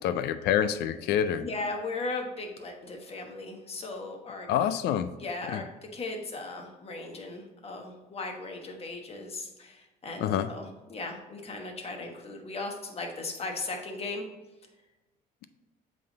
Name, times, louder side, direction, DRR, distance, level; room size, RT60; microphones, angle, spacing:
voice 1, 0.0-1.5 4.5-5.1 5.5-5.6 10.2-10.5, left 9 dB, 80° left, 13 dB, 0.5 m, -27 dB
voice 2, 1.4-4.5 5.2-5.7 5.9-14.2, left 3 dB, 35° left, 3 dB, 1.2 m, -37 dB
7.7 x 3.6 x 3.9 m, 1.1 s
cardioid pair, 110°, 17 cm